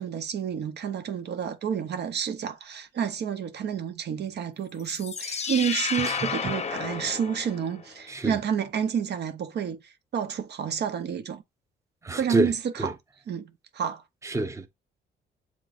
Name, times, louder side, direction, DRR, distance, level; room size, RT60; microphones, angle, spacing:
voice 1, 0.0-11.4 12.1-13.0 13.3-14.0, right 8 dB, 60° right, 0.7 m, -30 dB
sound 1, 4.8-7.9, left 6 dB, 35° left, 0.6 m, -32 dB
voice 2, 6.0-6.5 8.1-8.3 12.0-12.5 12.8-12.9 14.2-14.7, right 1 dB, 15° right, 0.7 m, -28 dB
7.1 x 3.0 x 2.4 m
cardioid pair, 90°, 20 cm